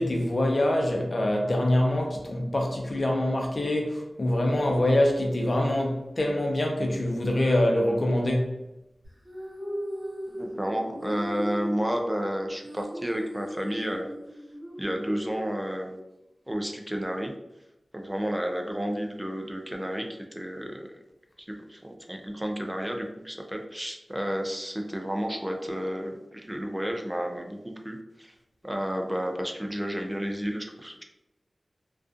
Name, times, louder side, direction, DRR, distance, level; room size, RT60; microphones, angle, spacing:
voice 1, 0.0-8.5, left 1 dB, 55° left, 0.6 m, -25 dB
sound 1, 9.0-16.1, equal, 60° right, 1.3 m, -38 dB
voice 2, 10.3-14.1 14.8-16.0 16.5-17.3 17.9-20.9 21.4-28.3 28.6-31.0, equal, 15° right, 0.4 m, -31 dB
2.4 x 2.4 x 2.4 m
cardioid pair, 40°, 0 cm